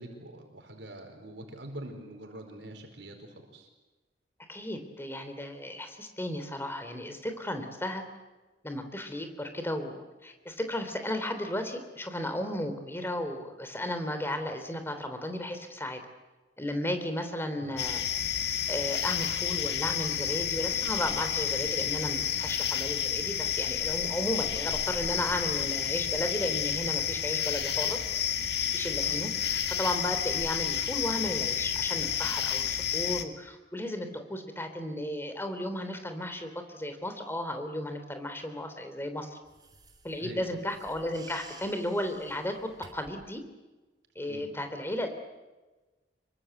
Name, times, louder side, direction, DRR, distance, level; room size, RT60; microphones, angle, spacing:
voice 1, 0.0-3.7 17.5-17.8 29.0-29.2 40.2-40.6 44.3-44.5, right 1 dB, 80° right, 3 dB, 4.7 m, -44 dB
voice 2, 4.5-8.0 8.6-16.0 16.6-18.0 18.7-28.0 28.7-39.4 40.0-43.4 44.1-45.1, left 1 dB, 15° left, 7 dB, 3.4 m, -34 dB
sound 1, 17.8-33.2, left 9 dB, 65° left, 1.9 m, -30 dB
sound 2, 39.5-43.3, right 3 dB, 25° right, 4.1 m, -53 dB
26.5 x 23.5 x 8.0 m, 1.2 s
head